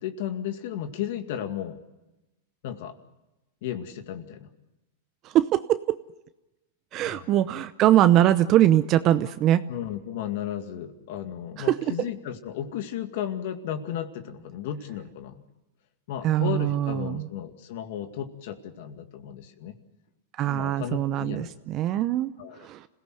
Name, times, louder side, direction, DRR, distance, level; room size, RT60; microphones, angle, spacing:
voice 1, 0.0-1.8 2.6-2.9 3.6-4.5 7.0-7.3 9.7-15.4 16.1-19.8 20.4-21.5 22.4-22.7, left 10 dB, 65° left, 7 dB, 2.1 m, -34 dB
voice 2, 5.3-6.0 6.9-9.6 11.6-11.9 16.2-17.3 20.4-22.3 22.6-22.8, right 12 dB, 40° right, 12 dB, 0.7 m, -22 dB
26.5 x 17.0 x 7.7 m, 1.0 s
hypercardioid pair, 130°, 0 cm